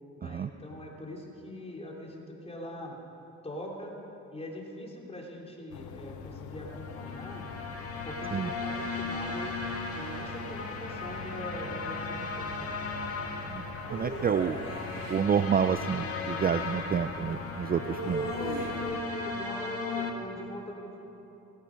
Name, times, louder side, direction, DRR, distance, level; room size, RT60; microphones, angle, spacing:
voice 1, 0.2-3.0 3.4-4.0 4.3-7.5 8.0-9.6 9.9-12.8 17.8-21.0, left 1 dB, 20° left, -2 dB, 3.4 m, -41 dB
sound 1, 5.7-19.0, left 5 dB, 85° left, 1.0 m, -44 dB
sound 2, 6.6-20.1, left 3 dB, 50° left, 2.0 m, -37 dB
voice 2, 13.9-14.6 15.1-18.2, right 7 dB, 30° right, 10 dB, 0.4 m, -28 dB
sound 3, 13.9-15.3 17.9-19.0, right 3 dB, 65° right, 2.1 m, -38 dB
17.5 x 15.5 x 5.3 m, 3.0 s
cardioid pair, 90°, 30 cm